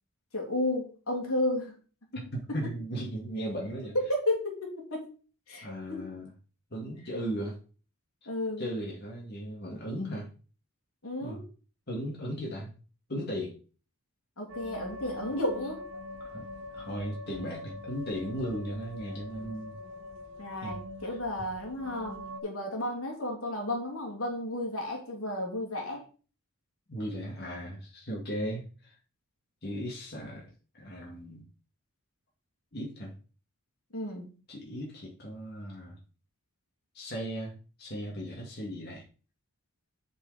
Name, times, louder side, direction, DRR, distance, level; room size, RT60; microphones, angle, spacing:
voice 1, 0.3-1.7 2.6-2.7 3.9-5.1 5.5-6.1 8.3-8.7 11.0-11.4 14.4-15.8 20.4-26.0 33.9-34.3, left 1 dB, 80° left, 0 dB, 3.0 m, -33 dB
voice 2, 2.2-3.9 5.6-6.3 6.7-7.6 8.6-10.3 11.2-11.4 11.9-12.7 13.1-13.6 16.2-16.5 16.7-19.8 20.6-20.7 26.9-28.9 29.6-30.5 30.8-31.5 32.7-33.1 34.5-36.0 36.9-39.0, equal, 50° left, -3 dB, 2.4 m, -36 dB
sound 1, 14.5-22.4, left 2 dB, 60° right, 1.4 m, -43 dB
7.5 x 5.4 x 5.2 m, 0.37 s
head